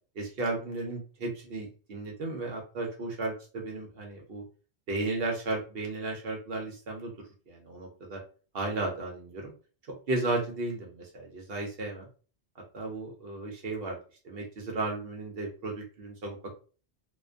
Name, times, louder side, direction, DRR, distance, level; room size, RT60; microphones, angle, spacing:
voice 1, 0.2-4.4 4.9-7.1 7.5-8.2 8.5-9.5 10.1-12.1 12.7-14.0 14.2-16.5, right 2 dB, 65° right, 0 dB, 0.8 m, -34 dB
2.4 x 2.2 x 2.4 m, 0.37 s
omnidirectional pair, 1.2 m